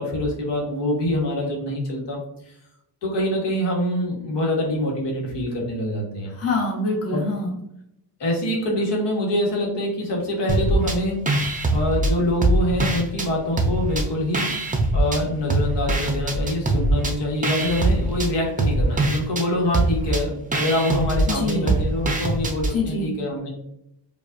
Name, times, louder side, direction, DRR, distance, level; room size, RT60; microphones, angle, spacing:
voice 1, 0.0-2.2 3.0-6.3 7.1-7.2 8.2-11.2 11.7-14.5 14.9-23.5, left 1 dB, 75° left, -2 dB, 1.3 m, -25 dB
voice 2, 6.3-7.6 21.3-21.7 22.7-23.2, left 2 dB, 35° left, -2 dB, 1.1 m, -25 dB
sound 1, 10.5-11.0 11.3-13.3 13.6-15.2 15.5-22.7, right 2 dB, 20° right, 0.5 m, -22 dB
5.0 x 2.4 x 2.6 m, 0.79 s
cardioid pair, 105°, 42 cm